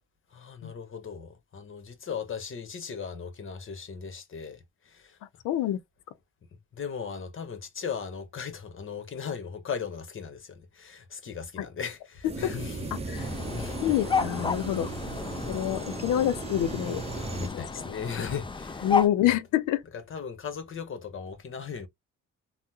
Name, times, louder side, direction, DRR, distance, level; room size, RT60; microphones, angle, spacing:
voice 1, 0.3-5.2 6.7-13.8 17.4-18.9 19.2-19.3 20.1-21.9, left 6 dB, 40° left, 1.0 m, -38 dB
voice 2, 5.4-5.8 11.6-11.7 12.4-12.5 12.9-13.3 13.8-14.9 15.5-17.0 17.4-17.6 18.8-19.8, left 12 dB, 85° left, 0.6 m, -27 dB
sound 1, 12.2-17.5, right 3 dB, 20° right, 0.6 m, -36 dB
sound 2, 13.1-19.1, left 5 dB, 15° left, 0.5 m, -33 dB
3.5 x 2.1 x 2.8 m
cardioid pair, 90°, 30 cm